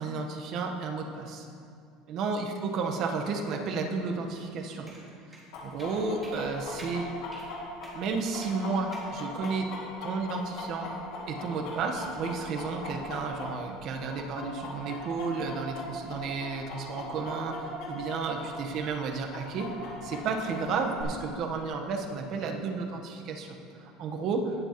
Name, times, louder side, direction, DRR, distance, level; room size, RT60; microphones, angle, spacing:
voice 1, 0.0-1.5 2.1-4.9 5.6-7.1 7.9-9.7 10.0-10.9 11.3-19.7 20.0-24.5, right 4 dB, 55° right, 3 dB, 1.2 m, -32 dB
sound 1, 4.9-5.0 5.3-5.4 5.8-6.0 6.2-6.4 6.8-6.9 7.3-7.5 7.8-8.0 8.4-8.6 8.9-9.1 9.4-9.6, right 2 dB, 15° right, 2.5 m, -48 dB
Chicken rooster, 5.5-13.8 14.1-18.5 18.7-18.8 19.3-21.0, left 3 dB, 70° left, 2.3 m, -39 dB
17.5 x 7.2 x 3.1 m, 2.4 s
supercardioid pair, 120°, 0 cm